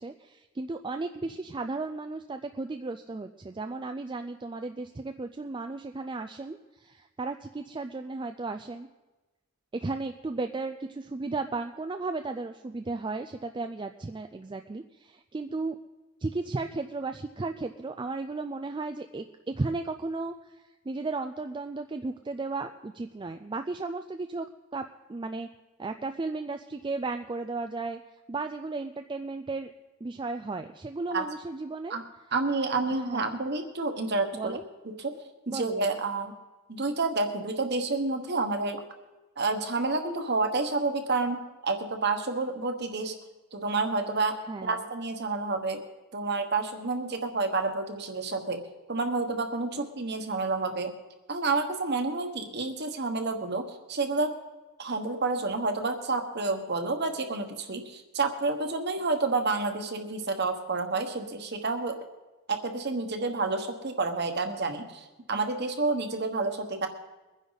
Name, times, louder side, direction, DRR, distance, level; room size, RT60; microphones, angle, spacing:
voice 1, 0.0-8.9 9.7-15.8 16.2-24.5 24.7-25.5 25.8-28.0 28.3-29.7 30.0-32.0 33.0-33.3 34.3-34.6 35.5-36.0 44.5-44.8, right 3 dB, 20° right, 6 dB, 0.3 m, -35 dB
voice 2, 32.3-34.6 35.0-35.1 35.5-36.3 36.7-38.8 39.4-43.1 43.5-45.8 46.1-48.6 48.9-50.9 51.3-54.3 54.8-62.0 62.5-66.9, right 3 dB, 45° right, 6 dB, 1.2 m, -29 dB
23.0 x 10.0 x 4.0 m, 1.2 s
head